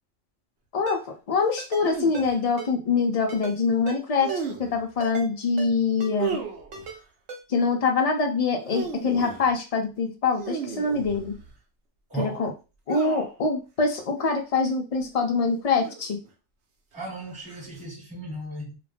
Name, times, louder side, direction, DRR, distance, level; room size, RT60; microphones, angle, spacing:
voice 1, 0.7-6.4 7.5-11.3 12.1-12.5 12.9-16.2, left 4 dB, 75° left, 0.3 m, -24 dB
Ringtone, 0.9-1.0 1.6-1.9 2.1-2.3 2.6-2.7 3.3-3.6 3.9-4.0 4.3-4.4 5.0-5.3 5.6-5.7 6.0-6.1 6.7-7.0 7.3-7.4, right 4 dB, 85° right, 1.2 m, -38 dB
sound 1, 1.8-2.3 4.2-4.9 6.2-7.0 8.5-9.5 10.3-11.5 12.9-13.4 14.2-14.5 15.7-16.3 17.5-17.8, right 6 dB, 65° right, 0.8 m, -34 dB
voice 2, 12.1-12.5 16.9-18.8, right 2 dB, 5° right, 1.1 m, -35 dB
2.4 x 2.1 x 3.3 m
omnidirectional pair, 1.3 m